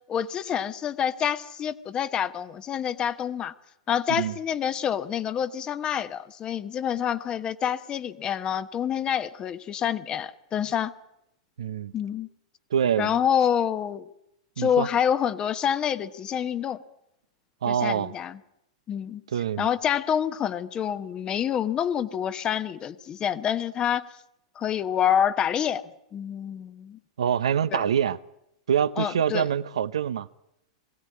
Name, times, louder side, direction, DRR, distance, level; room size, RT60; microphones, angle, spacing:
voice 1, 0.1-3.5 3.9-10.9 11.9-12.3 13.0-14.1 14.6-16.8 17.7-18.4 18.9-19.2 19.6-24.0 24.6-25.8 26.1-27.0 27.7-27.8 29.0-29.5, left 9 dB, 30° left, 1.1 m, -27 dB
voice 2, 11.6-11.9 12.7-13.2 14.6-14.9 17.6-18.1 19.3-19.7 27.2-28.2 28.7-30.3, right 8 dB, 80° right, 0.8 m, -25 dB
21.0 x 16.0 x 9.5 m
hypercardioid pair, 110°, 3 cm